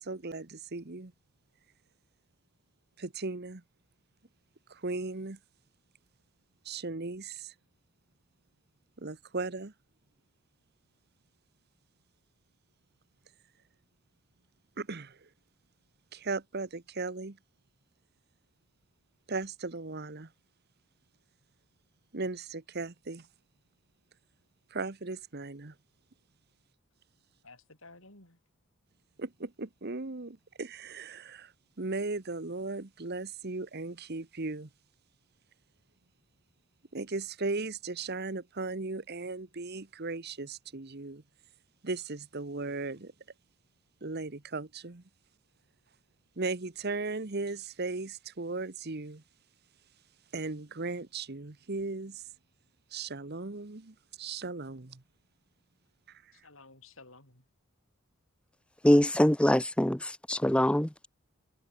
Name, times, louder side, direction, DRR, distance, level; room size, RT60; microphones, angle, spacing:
voice 1, 0.0-1.1 3.0-3.6 4.7-5.4 6.6-7.5 9.0-9.7 14.8-15.3 16.1-17.4 19.3-20.3 22.1-23.3 24.7-25.7 29.2-31.5 31.8-34.7 36.9-41.2 41.8-43.1 44.0-45.0 46.4-49.2 50.3-52.2 52.9-55.0 56.1-56.3, right 3 dB, 50° right, 1.1 m, -37 dB
voice 2, 27.4-28.4 56.3-57.4, left 3 dB, 65° left, 7.1 m, -54 dB
voice 3, 58.8-61.1, left 1 dB, 5° left, 0.6 m, -24 dB
head